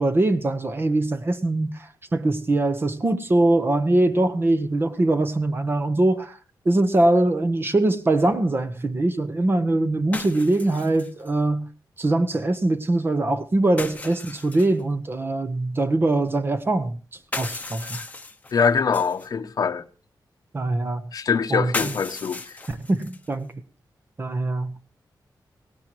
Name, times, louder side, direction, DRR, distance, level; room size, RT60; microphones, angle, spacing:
voice 1, 0.0-6.4 6.6-11.7 12.0-17.0 17.4-18.0 20.5-21.1 21.5-21.9 22.7-23.5 24.2-24.8, right 2 dB, 30° right, 1.1 m, -22 dB
sound 1, 6.9-7.0 10.1-11.3 13.8-14.8 17.1-19.3 21.7-23.3, left 3 dB, 20° left, 0.9 m, -35 dB
voice 2, 18.5-19.8 21.1-22.5, left 6 dB, 55° left, 0.9 m, -23 dB
18.0 x 17.5 x 3.0 m
wide cardioid pair, 145°, 7 cm